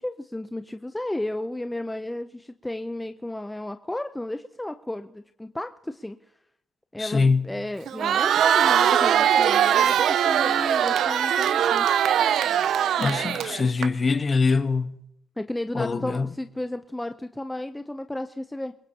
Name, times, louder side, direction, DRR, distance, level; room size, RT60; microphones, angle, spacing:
voice 1, 0.0-6.2 6.9-11.9 15.4-18.7, left 1 dB, 10° left, 0.6 m, -33 dB
voice 2, 7.0-7.5 13.0-15.0 15.7-16.3, left 4 dB, 35° left, 1.2 m, -23 dB
Crowd, 7.9-13.9, right 9 dB, 70° right, 0.5 m, -21 dB
27.0 x 17.0 x 2.9 m
cardioid pair, 90°, 0 cm